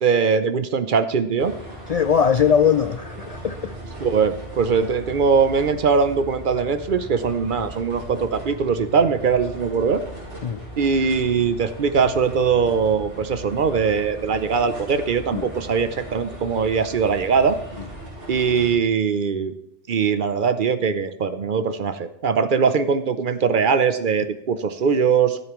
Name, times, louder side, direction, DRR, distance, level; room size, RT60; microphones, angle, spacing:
voice 1, 0.0-1.5 4.0-10.0 10.8-17.6 18.3-19.5 19.9-25.4, right 6 dB, 50° right, 0.7 m, -21 dB
sound 1, 1.4-18.8, right 1 dB, 75° right, 4.0 m, -38 dB
voice 2, 1.9-3.7 10.4-10.6 15.3-15.4, left 7 dB, 85° left, 0.3 m, -20 dB
13.5 x 8.3 x 3.1 m
omnidirectional pair, 1.2 m